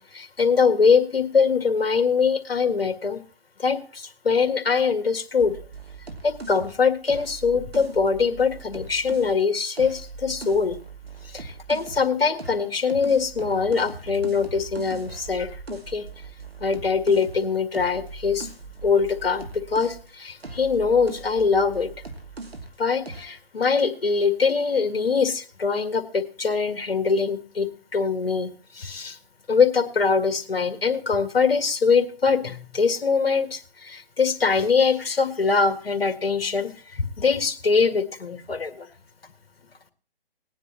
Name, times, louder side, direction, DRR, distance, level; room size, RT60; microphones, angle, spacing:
voice 1, 0.0-3.2 3.6-5.6 6.2-10.8 11.3-16.1 16.6-18.5 18.8-21.9 22.8-29.2 29.5-38.9, left 5 dB, 70° left, 8 dB, 1.8 m, -23 dB
sound 1, 5.4-9.4 9.7-12.1 12.4-20.1 20.4-22.8 23.1-23.4, right 3 dB, 80° right, 2.5 m, -40 dB
19.5 x 9.9 x 2.9 m, 0.37 s
figure-of-eight pair, 145°, 30 cm